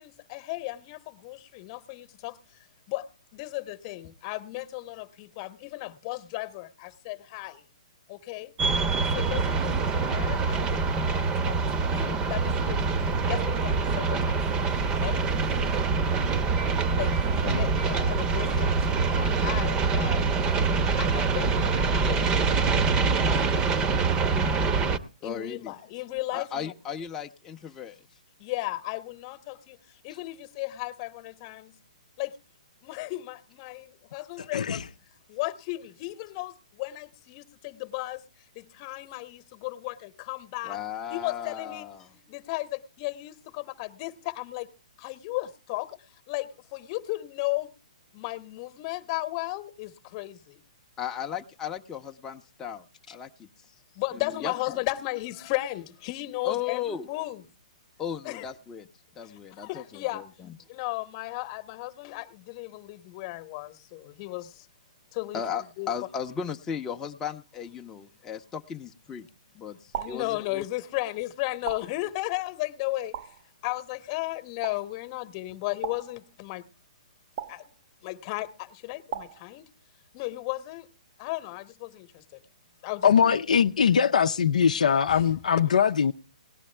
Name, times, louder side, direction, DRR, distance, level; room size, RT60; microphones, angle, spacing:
voice 1, 0.0-2.4 2.9-7.6 8.1-8.5 9.1-14.4 14.8-15.7 16.9-23.7 25.2-26.7 28.4-31.8 32.2-32.4 32.8-34.9 35.3-38.2 38.5-40.8 41.1-41.9 42.3-44.7 45.0-46.0 46.3-47.7 48.1-50.6 53.9-57.4 58.2-58.4 59.5-60.2 60.7-64.7 65.1-65.4 65.8-65.9 70.0-73.4 73.6-76.7 77.5-77.7 78.0-79.7 80.1-80.9 81.2-82.4 82.8-83.1 85.1-85.4 85.6-85.7, left 19 dB, 35° left, 1.1 m, -35 dB
sound 1, 8.6-25.0, right 4 dB, 20° right, 0.8 m, -25 dB
voice 2, 25.2-25.8 26.3-28.0 40.6-42.1 51.0-53.5 54.1-54.5 56.4-57.1 58.0-58.9 59.2-60.6 65.3-69.3 69.5-70.7 83.1-83.4, left 8 dB, 15° left, 0.7 m, -36 dB
sound 2, 69.9-70.3 71.7-72.1 73.1-73.5 74.6-74.9 75.8-76.2 77.4-77.7 79.1-79.5, right 9 dB, 45° right, 0.7 m, -37 dB
voice 3, 83.0-86.1, left 7 dB, 75° left, 0.6 m, -22 dB
18.5 x 11.5 x 3.3 m
hypercardioid pair, 135°, 4 cm